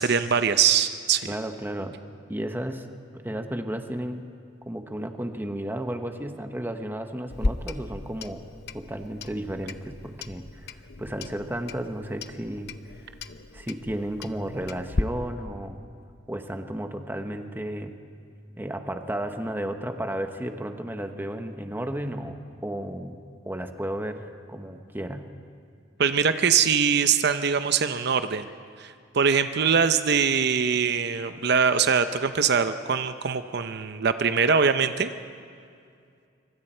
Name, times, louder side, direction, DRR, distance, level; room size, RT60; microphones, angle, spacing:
voice 1, 0.0-1.3 26.0-28.5 28.8-35.1, right 6 dB, 60° right, 10 dB, 0.7 m, -23 dB
voice 2, 1.3-2.0 2.3-2.8 3.1-4.3 4.6-8.5 8.7-10.7 11.0-12.7 13.5-15.8 16.3-18.0 18.6-23.2 23.4-25.3, right 1 dB, 10° right, 6 dB, 1.0 m, -33 dB
Clock, 7.3-15.0, left 2 dB, 60° left, 0.7 m, -35 dB
25.0 x 24.0 x 4.4 m, 2.3 s
head